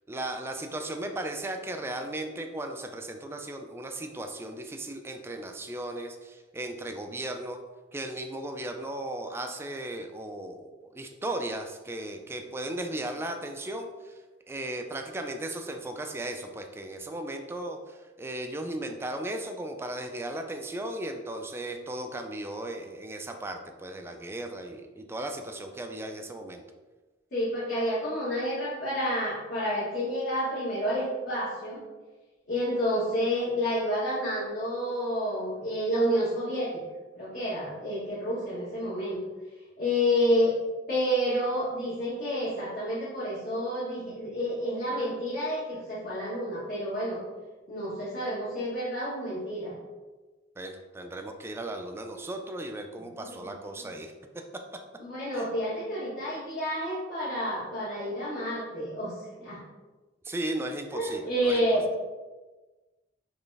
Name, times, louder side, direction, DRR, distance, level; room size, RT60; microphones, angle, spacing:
voice 1, 0.1-7.6 7.9-14.2 14.5-26.6 50.6-54.1 55.4-55.5 60.2-61.6, right 1 dB, 15° right, 4 dB, 0.3 m, -36 dB
voice 2, 27.3-31.8 32.5-36.8 37.1-39.2 39.8-40.5 40.9-47.2 47.7-49.8 53.1-53.5 55.0-59.1 59.4-59.6 60.9-61.8, equal, 55° left, -10 dB, 1.4 m, -29 dB
4.1 x 3.1 x 3.3 m, 1.2 s
head